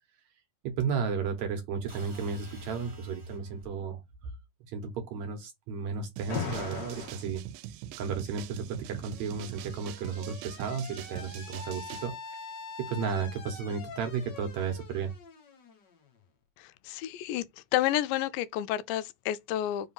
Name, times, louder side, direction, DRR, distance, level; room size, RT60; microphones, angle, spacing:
voice 1, 0.6-4.3 4.7-7.4 8.0-12.4 12.8-15.1, right 6 dB, 70° right, 2.0 m, -34 dB
sound 1, 1.9-3.8, left 2 dB, 20° right, 1.4 m, -46 dB
sound 2, 6.2-12.1, right 12 dB, 85° right, 2.2 m, -44 dB
Alarm, 6.3-7.3 8.5-16.2, left 5 dB, 50° left, 1.4 m, -42 dB
voice 2, 16.6-17.5 17.7-19.9, left 13 dB, 85° left, 2.2 m, -30 dB
5.0 x 3.5 x 5.5 m
omnidirectional pair, 3.9 m